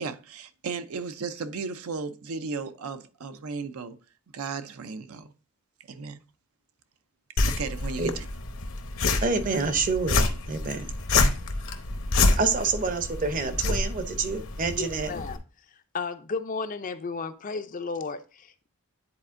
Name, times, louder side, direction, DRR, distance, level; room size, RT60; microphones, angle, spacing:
voice 1, 0.0-4.0 4.3-5.3 5.9-6.2 7.4-8.3, right 4 dB, 75° right, 0.5 m, -35 dB
sound 1, 7.4-15.4, left 3 dB, 65° left, 0.8 m, -27 dB
voice 2, 9.2-10.2 10.5-10.9 12.4-15.1, right 4 dB, 35° right, 0.7 m, -27 dB
voice 3, 14.7-15.4 15.9-18.7, left 4 dB, 35° left, 0.4 m, -33 dB
9.8 x 4.2 x 2.5 m
head